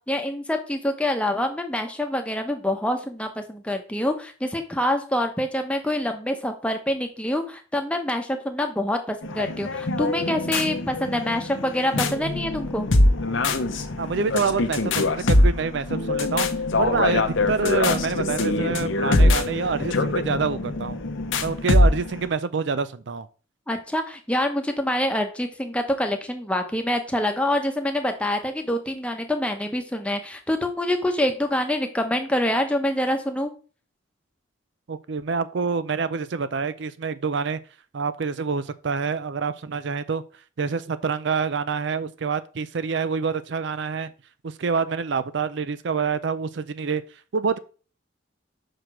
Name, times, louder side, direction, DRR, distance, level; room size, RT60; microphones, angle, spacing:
voice 1, 0.1-12.9 23.7-33.5, left 1 dB, 5° left, 1.0 m, -26 dB
sound 1, 9.2-22.3, left 2 dB, 75° left, 0.9 m, -23 dB
voice 2, 14.0-16.5 16.8-21.0 21.4-23.3 34.9-37.6 37.9-40.2 40.6-44.1 44.4-47.0 47.3-47.6, right 5 dB, 60° right, 0.5 m, -26 dB
5.9 x 5.0 x 6.0 m
head